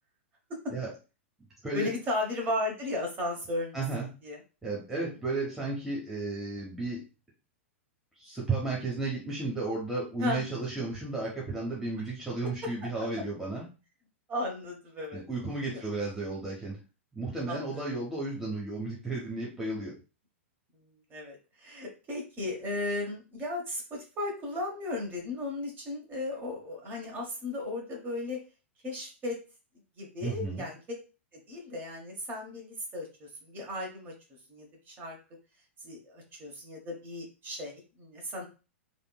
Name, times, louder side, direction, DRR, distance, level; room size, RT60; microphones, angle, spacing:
voice 1, 1.7-4.4 5.0-5.1 10.2-10.4 14.3-15.2 15.7-15.8 17.5-17.8 20.7-28.4 28.8-29.4 30.0-31.0 31.3-34.1 34.5-35.2 35.8-38.5, left 2 dB, 25° right, 0 dB, 1.3 m, -35 dB
voice 2, 3.7-4.1 4.6-7.0 8.2-13.6 15.1-16.8 17.1-19.9 30.2-30.7, right 3 dB, 5° right, -4 dB, 0.9 m, -33 dB
3.4 x 2.6 x 2.3 m, 0.32 s
figure-of-eight pair, 100°, 7 cm